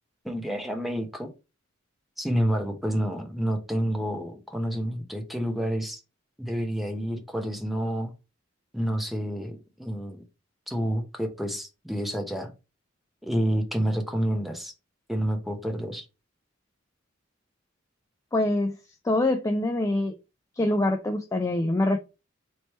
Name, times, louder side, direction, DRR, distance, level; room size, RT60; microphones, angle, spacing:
voice 1, 0.2-1.3 2.2-6.0 6.4-8.1 8.7-10.2 10.7-12.5 13.2-14.7 15.1-16.1, equal, ahead, 0.7 m, -29 dB
voice 2, 18.3-18.8 19.0-20.1 20.6-22.0, left 1 dB, 15° left, 0.3 m, -24 dB
3.2 x 3.1 x 4.2 m
head